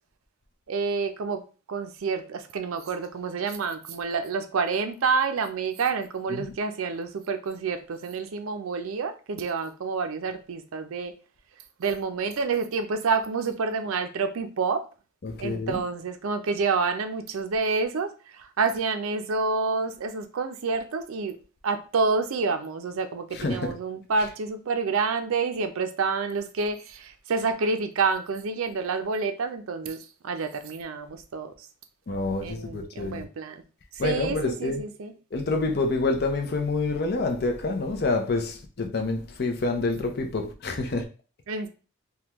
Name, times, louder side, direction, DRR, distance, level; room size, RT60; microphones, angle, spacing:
voice 1, 0.7-1.4 1.7-11.1 11.8-14.8 15.4-18.1 18.4-21.3 21.6-31.5 32.4-33.6 34.0-35.1 41.5-41.7, right 4 dB, 75° right, 0.4 m, -28 dB
voice 2, 15.2-15.8 23.4-23.7 32.1-33.2 34.0-34.8 35.3-41.0, left 3 dB, 45° left, 0.5 m, -27 dB
3.4 x 2.2 x 2.9 m
head